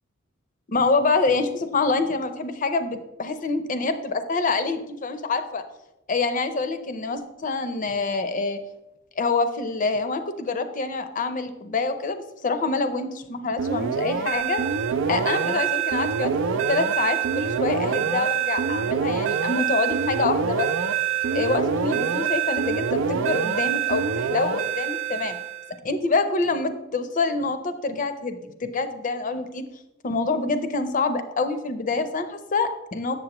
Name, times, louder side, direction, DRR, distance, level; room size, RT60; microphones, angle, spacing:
voice 1, 0.7-5.6 6.1-8.6 9.2-14.6 15.1-20.7 21.3-25.4 25.8-29.6 30.0-33.1, left 3 dB, 40° left, 10 dB, 0.5 m, -26 dB
sound 1, 13.6-25.7, right 7 dB, 70° right, 0.4 m, -25 dB
7.6 x 7.1 x 2.9 m, 0.93 s
head